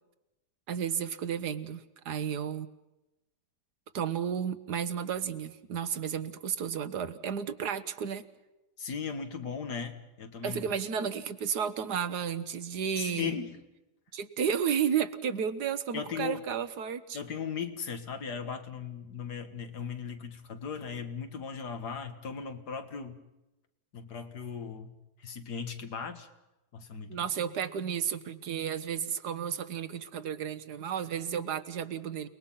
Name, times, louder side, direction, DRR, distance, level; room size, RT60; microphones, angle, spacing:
voice 1, 0.7-2.7 3.9-8.2 10.4-13.3 14.1-17.2 27.1-32.3, right 8 dB, 80° right, 12 dB, 1.7 m, -32 dB
voice 2, 8.8-10.7 13.0-13.6 15.9-16.4 17.1-23.2 23.9-24.9 25.2-26.3 26.7-27.2, left 6 dB, 80° left, 8 dB, 2.3 m, -37 dB
29.5 x 20.0 x 5.8 m, 0.97 s
omnidirectional pair, 1.7 m